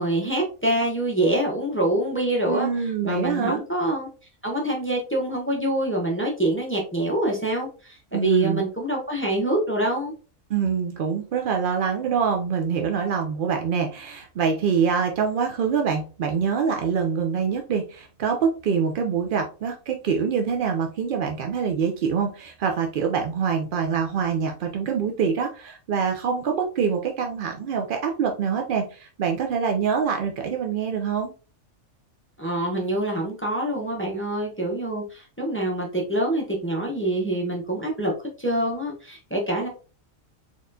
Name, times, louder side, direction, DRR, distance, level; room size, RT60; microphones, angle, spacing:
voice 1, 0.0-4.1 4.4-10.1 32.4-39.7, right 1 dB, 10° left, 0 dB, 0.7 m, -25 dB
voice 2, 2.5-3.6 8.1-8.6 10.5-31.3, right 6 dB, 70° right, 3 dB, 0.5 m, -25 dB
4.1 x 3.0 x 2.6 m, 0.35 s
omnidirectional pair, 1.4 m